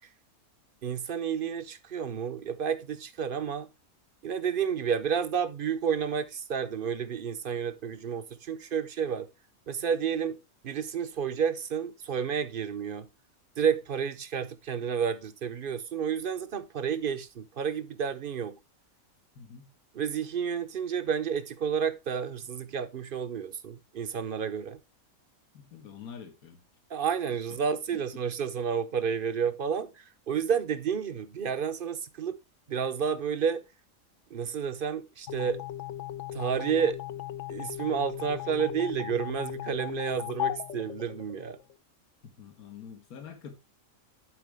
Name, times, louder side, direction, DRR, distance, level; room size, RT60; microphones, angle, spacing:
voice 1, 0.8-3.7 4.2-9.3 9.7-10.4 10.6-13.1 13.6-18.6 19.9-24.8 26.9-32.4 32.7-33.6 34.3-35.6 36.3-37.0 37.5-41.6, right 7 dB, 50° right, 0.7 m, -30 dB
voice 2, 19.3-19.7 25.5-26.6 27.5-27.6 42.2-43.5, left 7 dB, 80° left, 1.8 m, -46 dB
sound 1, 35.3-41.8, left 13 dB, 65° left, 0.9 m, -37 dB
11.5 x 4.8 x 3.4 m
omnidirectional pair, 1.5 m